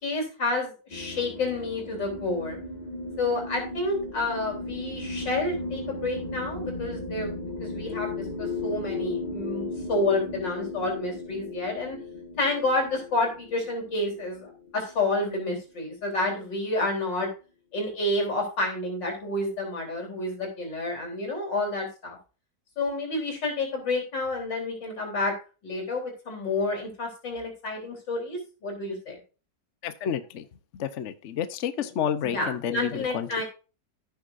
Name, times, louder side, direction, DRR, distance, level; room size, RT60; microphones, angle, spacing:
voice 1, 0.0-2.6 3.2-12.0 12.4-17.3 17.7-22.2 22.8-25.3 25.6-29.2 32.2-33.4, left 2 dB, 85° left, 4.3 m, -29 dB
sound 1, 0.9-15.5, left 2 dB, 25° left, 1.7 m, -36 dB
voice 2, 29.8-30.5 30.7-33.4, left 8 dB, 55° left, 0.9 m, -30 dB
15.0 x 6.4 x 2.6 m
omnidirectional pair, 1.9 m